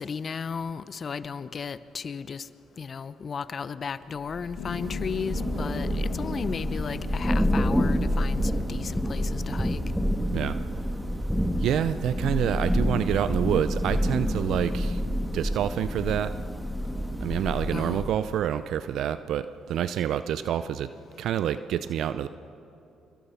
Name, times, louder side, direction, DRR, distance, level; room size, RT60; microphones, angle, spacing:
voice 1, 0.0-2.5 2.8-9.8 17.7-18.1, left 6 dB, 45° left, 15 dB, 0.8 m, -35 dB
Thunder / Rain, 4.3-18.4, equal, ahead, 2.0 m, -28 dB
Piano, 4.6-9.7, left 9 dB, 90° left, 1.4 m, -41 dB
voice 2, 11.6-15.0 15.3-16.3 17.2-20.9 21.2-22.3, right 10 dB, 70° right, 13 dB, 0.5 m, -27 dB
26.5 x 22.5 x 5.7 m, 2.8 s
supercardioid pair, 65°, 0 cm